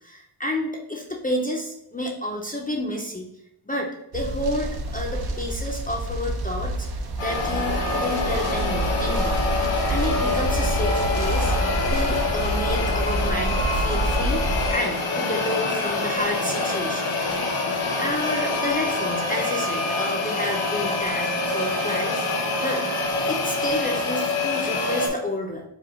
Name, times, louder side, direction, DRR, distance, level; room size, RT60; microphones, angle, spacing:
voice 1, 0.0-3.3 3.7-6.9 7.2-9.4 9.9-11.5 11.9-17.2 18.0-22.3 22.6-22.8 23.3-25.6, left 1 dB, 20° left, -1 dB, 0.5 m, -30 dB
sound 1, 4.1-14.7, right 1 dB, 50° right, 0.6 m, -27 dB
sound 2, 7.2-25.1, left 3 dB, 80° left, 1.5 m, -26 dB
4.8 x 2.3 x 4.7 m, 0.83 s
wide cardioid pair, 125°, 49 cm